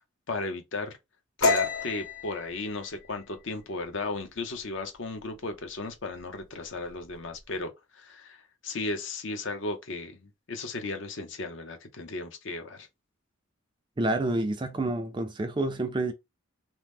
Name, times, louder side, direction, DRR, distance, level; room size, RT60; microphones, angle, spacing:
voice 1, 0.3-1.0 1.4-12.9, left 3 dB, 60° left, 0.6 m, -35 dB
sound 1, 1.4-4.8 5.2-5.5 5.9-6.4 6.7-7.4, left 3 dB, 75° left, 1.1 m, -30 dB
voice 2, 14.0-16.1, right 2 dB, 20° right, 0.4 m, -28 dB
2.8 x 2.0 x 3.4 m
head